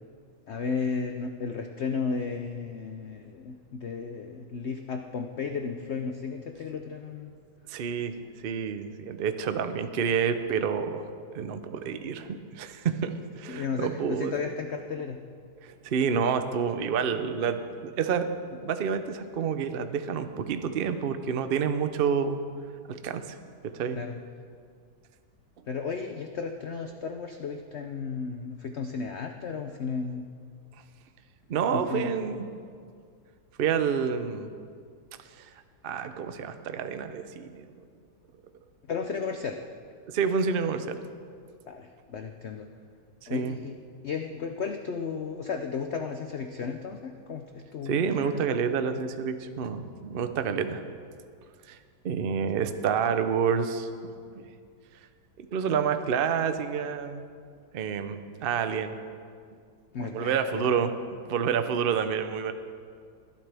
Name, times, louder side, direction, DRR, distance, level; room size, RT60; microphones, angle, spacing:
voice 1, 0.5-7.3 13.5-15.2 23.9-24.2 25.7-30.3 31.7-32.1 38.9-39.6 41.7-42.7 43.3-48.4 59.9-60.6, left 5 dB, 70° left, 5 dB, 0.6 m, -34 dB
voice 2, 7.7-11.0 11.3-14.4 15.6-22.4 22.9-23.4 23.6-24.0 31.5-32.4 33.6-34.5 35.4-35.5 35.8-37.6 40.1-41.0 43.2-43.6 47.8-50.8 51.7-51.8 52.0-53.9 54.3-54.5 55.4-57.2 57.7-59.0 60.0-60.9 61.3-62.5, right 6 dB, 70° right, 9 dB, 0.5 m, -28 dB
20.5 x 12.0 x 3.4 m, 2.2 s
omnidirectional pair, 1.9 m